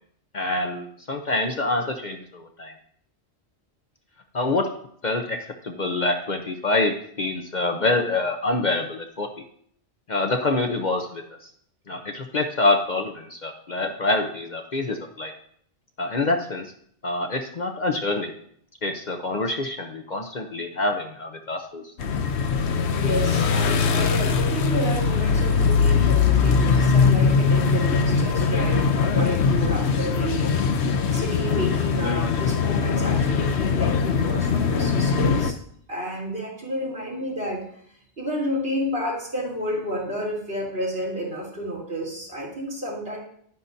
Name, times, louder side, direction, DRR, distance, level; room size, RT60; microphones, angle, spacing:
voice 1, 0.3-2.7 4.3-4.7 5.0-9.3 10.1-11.2 11.9-15.3 16.0-16.7 17.0-18.3 18.8-21.8, left 2 dB, 45° left, 4 dB, 0.8 m, -26 dB
sound 1, 22.0-35.5, left 5 dB, 75° left, 1.0 m, -21 dB
voice 2, 22.9-30.6 31.1-35.5 35.9-37.6 38.2-43.2, equal, 60° right, -4 dB, 3.8 m, -31 dB
11.5 x 9.4 x 2.7 m, 0.64 s
omnidirectional pair, 1.1 m